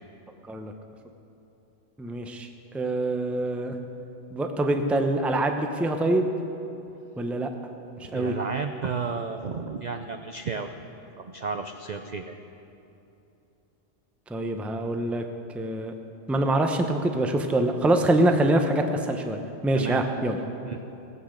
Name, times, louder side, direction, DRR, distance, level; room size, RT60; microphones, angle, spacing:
voice 1, 2.0-2.5 2.7-3.7 4.3-6.3 7.2-7.5 8.1-8.3 14.3-15.2 15.5-15.9 16.3-20.4, right 1 dB, ahead, 5 dB, 0.5 m, -25 dB
voice 2, 8.1-10.7 11.2-12.4 19.7-20.1 20.6-20.8, right 5 dB, 55° right, 6 dB, 0.5 m, -32 dB
18.0 x 8.2 x 6.5 m, 2.9 s
omnidirectional pair, 1.3 m